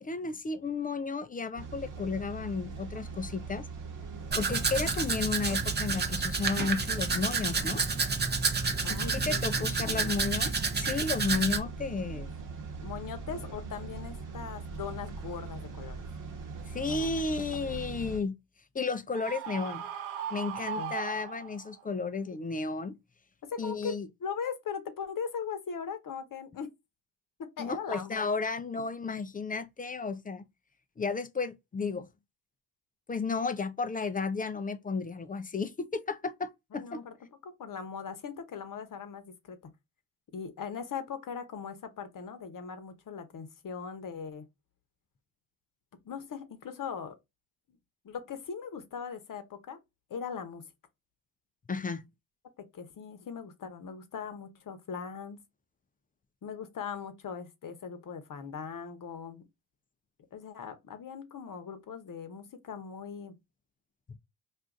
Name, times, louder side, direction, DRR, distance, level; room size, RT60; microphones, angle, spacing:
voice 1, 0.0-3.7 4.4-7.8 8.8-12.3 16.7-18.3 18.7-19.9 20.3-23.0 23.6-24.1 27.6-30.4 31.0-32.1 33.1-37.1 51.7-52.0, left 4 dB, 20° left, 0.3 m, -33 dB
sound 1, 1.6-18.2, right 4 dB, 45° right, 1.1 m, -41 dB
Domestic sounds home sounds, 4.3-11.6, right 4 dB, 25° right, 0.6 m, -30 dB
voice 2, 8.8-10.1 12.8-16.0 16.9-17.1 17.6-17.7 20.7-20.9 23.5-26.7 27.4-28.3 36.7-37.1 37.4-39.6 40.3-44.5 46.0-47.2 48.0-49.8 50.1-50.6 52.6-55.4 56.4-59.4 60.3-63.3, left 6 dB, 45° left, 0.9 m, -40 dB
Screaming, 19.1-21.8, right 8 dB, 90° right, 0.6 m, -38 dB
2.5 x 2.4 x 3.5 m
supercardioid pair, 70°, 45 cm